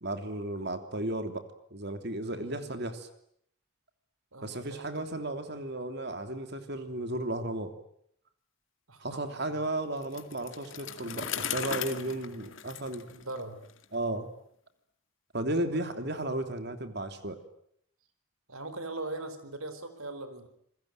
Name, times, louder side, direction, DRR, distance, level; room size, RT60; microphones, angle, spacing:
voice 1, 0.0-3.1 4.4-7.7 9.0-13.1 13.9-14.3 15.3-17.4, right 1 dB, 50° right, 8 dB, 3.0 m, -34 dB
voice 2, 2.3-2.9 4.3-5.0 8.9-9.7 13.1-13.6 15.7-16.0 18.5-20.5, right 2 dB, 90° right, 11 dB, 4.6 m, -41 dB
Bicycle, 10.0-13.8, left 8 dB, 65° left, 2.2 m, -38 dB
28.5 x 21.5 x 9.2 m, 0.69 s
head